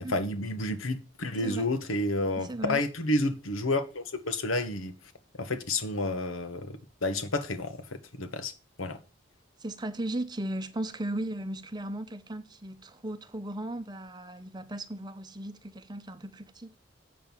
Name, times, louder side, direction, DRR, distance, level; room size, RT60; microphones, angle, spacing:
voice 1, 0.0-4.9 5.4-7.8 8.2-8.5 8.8-9.0, left 2 dB, 90° left, 1.3 m, -30 dB
voice 2, 2.4-2.8 9.6-16.8, right 1 dB, 20° right, 0.7 m, -36 dB
7.7 x 6.1 x 7.2 m
head